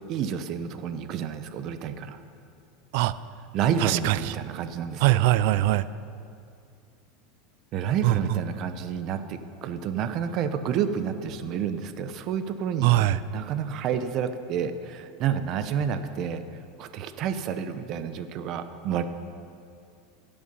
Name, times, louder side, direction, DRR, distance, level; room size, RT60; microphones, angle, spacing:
voice 1, 0.0-2.2 3.5-5.2 7.7-12.9 13.3-16.4 16.8-19.1, right 8 dB, 45° right, 10 dB, 0.7 m, -29 dB
voice 2, 3.8-4.2 5.0-5.8 8.0-8.1 12.8-13.2, right 16 dB, 65° right, 16 dB, 0.4 m, -21 dB
16.5 x 7.0 x 5.3 m, 2.5 s
supercardioid pair, 135°, 0 cm